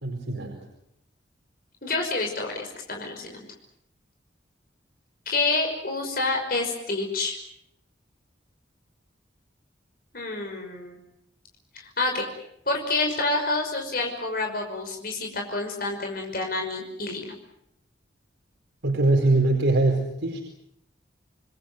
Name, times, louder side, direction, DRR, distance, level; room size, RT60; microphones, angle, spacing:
voice 1, 0.0-0.6 18.8-20.4, right 2 dB, 85° right, 1 dB, 4.6 m, -22 dB
voice 2, 1.8-3.5 5.3-7.4 10.1-11.0 11.7-12.2 12.7-17.3, left 3 dB, 50° left, 2 dB, 5.6 m, -28 dB
28.5 x 21.5 x 7.9 m, 0.74 s
head